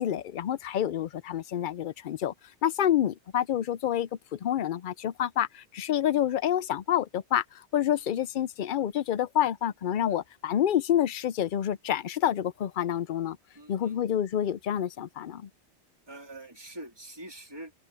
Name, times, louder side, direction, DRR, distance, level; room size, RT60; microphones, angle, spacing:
voice 1, 0.0-2.3 2.6-7.4 7.7-13.4 13.7-15.5, left 10 dB, 60° left, 0.6 m, -28 dB
voice 2, 13.5-14.0 16.1-17.7, right 1 dB, 20° right, 3.5 m, -44 dB
open air
omnidirectional pair, 1.1 m